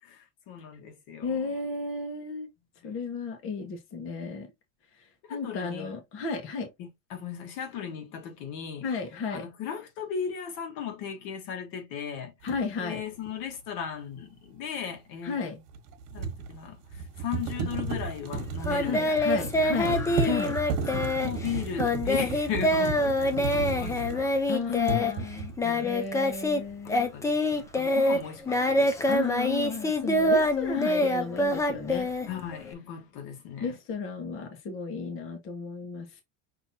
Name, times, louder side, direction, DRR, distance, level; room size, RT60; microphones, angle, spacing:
voice 1, 0.0-1.5 2.8-3.0 5.3-6.0 6.8-8.9 9.3-12.3 12.8-15.6 16.1-20.4 20.8-24.3 24.7-24.8 25.6-26.0 27.1-29.3 32.2-33.7, left 8 dB, 60° left, 1.5 m, -37 dB
voice 2, 1.2-2.5 2.8-4.5 5.3-6.7 8.8-9.5 12.4-13.0 15.2-15.6 18.8-20.5 24.5-25.5 25.8-27.1 29.1-32.1 33.6-36.1, left 4 dB, 35° left, 1.2 m, -33 dB
sound 1, 12.5-12.6 15.7-24.5 24.8-25.6, right 4 dB, 75° right, 1.3 m, -33 dB
Singing, 18.6-26.6 26.9-32.7, left 1 dB, 10° left, 0.5 m, -26 dB
5.9 x 3.0 x 2.7 m
cardioid pair, 160°, 35 cm